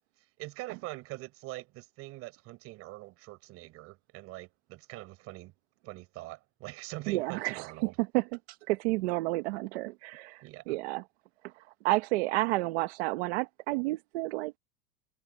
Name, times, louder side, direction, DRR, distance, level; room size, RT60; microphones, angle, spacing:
voice 1, 0.4-5.5 5.8-7.9 10.4-10.8, right 19 dB, 35° right, 7.0 m, -44 dB
voice 2, 7.1-7.7 8.0-11.0 11.6-14.6, right 21 dB, 50° right, 1.2 m, -31 dB
supercardioid pair, 170°, 41 cm